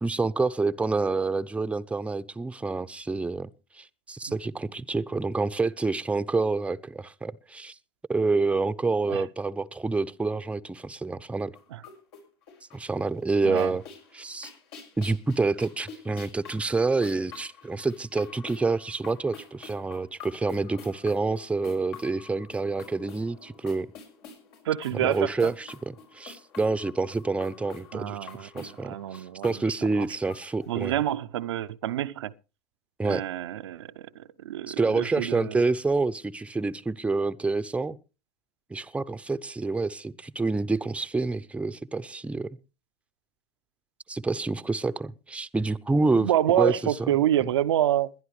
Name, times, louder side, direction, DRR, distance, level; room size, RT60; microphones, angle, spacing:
voice 1, 0.0-3.5 3.7-7.7 8.1-11.6 12.7-13.8 14.1-14.5 15.0-23.9 24.9-31.0 33.0-33.2 34.7-38.0 38.7-42.6 44.1-46.3 46.6-47.2, right 3 dB, 10° right, 0.7 m, -28 dB
sound 1, 11.5-13.0 13.3-30.9, left 5 dB, 70° left, 5.9 m, -48 dB
voice 2, 24.7-25.5 27.9-29.5 30.0-30.1 30.7-32.3 33.0-35.6 46.1-48.1, right 12 dB, 80° right, 0.6 m, -27 dB
21.5 x 11.0 x 3.2 m
hypercardioid pair, 85°, 14 cm